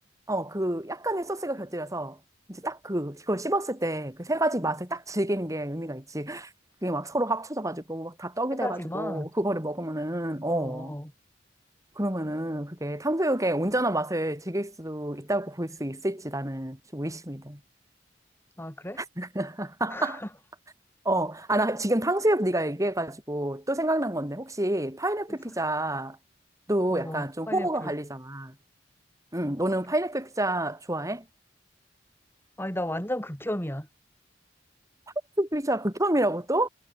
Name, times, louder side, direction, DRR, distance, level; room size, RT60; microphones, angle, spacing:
voice 1, 0.3-2.2 2.6-6.5 6.8-10.9 12.0-17.6 19.0-20.2 21.0-26.2 26.7-28.5 29.3-31.2 35.4-36.7, right 1 dB, 20° right, 6.5 m, -28 dB
voice 2, 8.6-9.3 10.5-11.1 18.6-19.0 19.9-20.3 26.9-27.9 32.6-33.9, left 1 dB, 15° left, 6.1 m, -34 dB
head